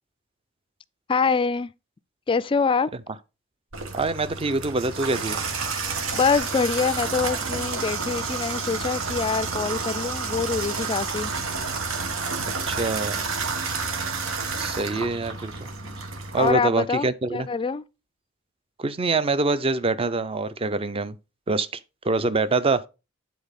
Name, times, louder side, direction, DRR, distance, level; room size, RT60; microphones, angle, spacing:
voice 1, 1.1-1.7 2.3-2.9 6.1-11.3 15.7-16.0 16.4-17.8, left 5 dB, 25° left, 0.3 m, -25 dB
Water tap faucet / Bathtub (filling or washing), 3.7-16.5, right 4 dB, 85° right, 1.3 m, -30 dB
voice 2, 3.9-5.4 12.7-13.3 14.6-15.7 16.3-17.5 18.8-21.2 21.5-21.7 22.0-22.8, right 3 dB, 30° right, 0.6 m, -25 dB
sound 1, 14.6-16.1, right 4 dB, 65° right, 5.7 m, -51 dB
9.4 x 4.0 x 5.2 m
head